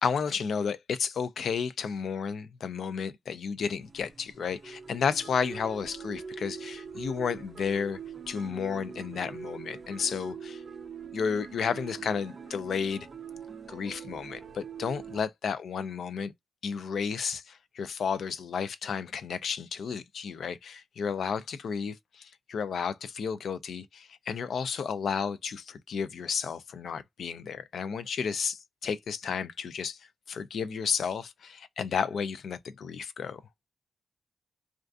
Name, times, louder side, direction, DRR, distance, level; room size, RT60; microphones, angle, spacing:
voice 1, 0.0-8.0 8.3-10.6 11.1-13.1 13.7-16.3 16.6-30.0 30.3-33.4, left 6 dB, 70° left, 0.3 m, -32 dB
sound 1, 3.8-15.2, right 6 dB, 35° right, 0.4 m, -43 dB
2.4 x 2.3 x 2.3 m
wide cardioid pair, 160°, 0 cm